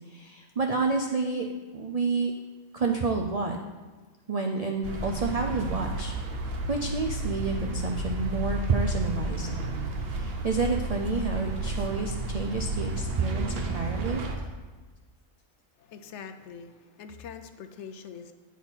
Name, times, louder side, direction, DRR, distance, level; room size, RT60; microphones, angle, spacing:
voice 1, 0.1-2.3 2.7-3.6 4.3-6.2 6.7-9.5 10.0-14.2, right 3 dB, 80° right, 2 dB, 0.3 m, -29 dB
sound 1, 4.8-14.4, right 2 dB, 55° right, 0.9 m, -32 dB
voice 2, 15.8-18.3, left 6 dB, 65° left, 8 dB, 0.8 m, -43 dB
8.3 x 5.6 x 4.4 m, 1.3 s
omnidirectional pair, 1.4 m